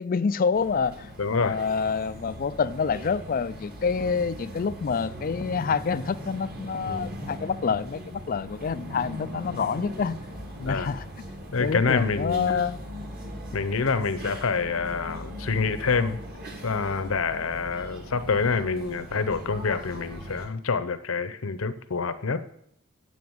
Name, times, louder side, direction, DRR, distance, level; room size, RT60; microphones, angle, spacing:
voice 1, 0.0-10.2 10.6-11.0 11.6-12.8, left 5 dB, 40° left, 0.3 m, -27 dB
sound 1, 0.5-20.5, equal, 45° right, 2.0 m, -40 dB
voice 2, 1.2-1.6 6.9-7.2 10.6-10.9 11.5-12.6 13.5-16.2 16.6-22.4, left 4 dB, 65° left, 0.7 m, -27 dB
9.4 x 7.8 x 7.2 m
head